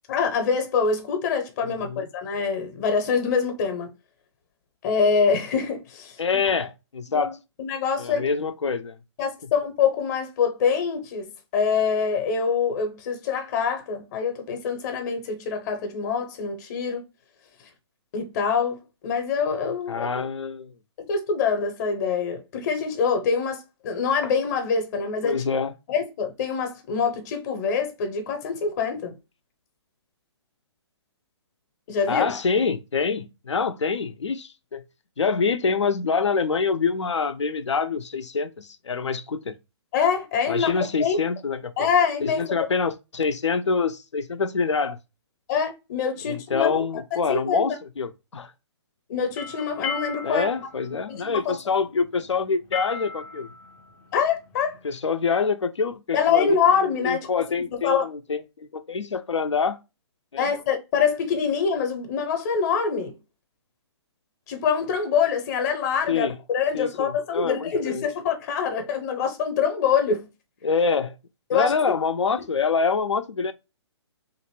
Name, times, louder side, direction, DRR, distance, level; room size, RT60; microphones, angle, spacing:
voice 1, 0.1-3.9 4.8-6.2 7.1-7.3 7.6-8.3 9.2-17.0 18.1-20.2 21.0-25.4 25.9-29.2 31.9-32.3 39.9-41.2 41.8-42.7 45.5-46.8 47.3-47.7 49.1-50.5 51.1-51.6 54.1-54.8 56.1-57.3 57.7-58.1 60.4-63.2 64.5-70.3 71.5-71.9, left 6 dB, 40° left, 0.7 m, -25 dB
voice 2, 1.7-2.1 6.2-7.4 8.0-9.0 19.9-20.7 25.2-25.7 32.1-34.8 35.2-39.5 40.5-41.9 42.2-45.0 46.2-48.5 50.2-53.5 54.8-59.8 60.3-60.5 66.1-66.4 66.7-68.1 70.6-71.2 71.5-73.5, left 5 dB, 90° left, 0.5 m, -26 dB
sound 1, 49.1-54.9, left 5 dB, 10° left, 0.3 m, -36 dB
3.0 x 2.6 x 2.9 m
hypercardioid pair, 140°, 15 cm